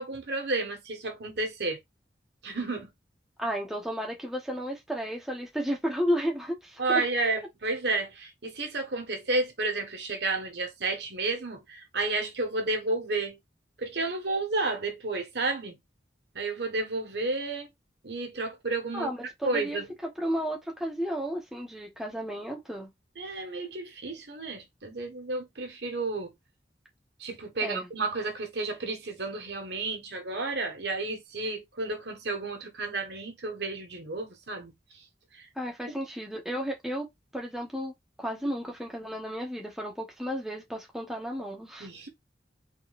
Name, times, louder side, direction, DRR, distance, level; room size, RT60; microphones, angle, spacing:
voice 1, 0.0-1.8 2.4-2.9 6.8-13.4 13.8-15.8 16.3-17.7 18.0-19.1 19.4-19.9 23.2-26.3 27.2-34.7 35.3-35.5 41.8-42.1, right 3 dB, 70° right, 1.4 m, -31 dB
voice 2, 3.4-6.8 18.9-19.8 20.2-22.9 27.6-27.9 35.6-37.1 37.3-37.9 38.2-41.9, equal, ahead, 1.0 m, -33 dB
4.2 x 3.8 x 2.4 m
head